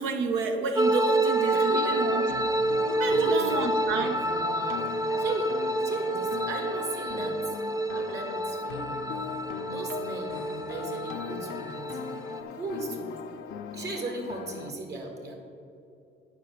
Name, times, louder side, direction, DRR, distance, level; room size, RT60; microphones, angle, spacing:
voice 1, 0.0-2.3 2.9-4.2, right 4 dB, 85° right, 4 dB, 0.8 m, -30 dB
sound 1, 0.8-12.4, right 2 dB, 20° right, 0.7 m, -28 dB
voice 2, 1.5-1.9 3.0-3.6 3.8-4.9 5.2-5.5 5.8-7.4 7.9-8.9 9.7-10.4 10.7-11.8 12.6-13.1 13.7-15.3, right 2 dB, 60° right, 1 dB, 1.8 m, -35 dB
sound 2, 1.9-14.7, left 8 dB, 85° left, 0.6 m, -40 dB
9.6 x 4.8 x 6.6 m, 2.6 s
cardioid pair, 90°, 20 cm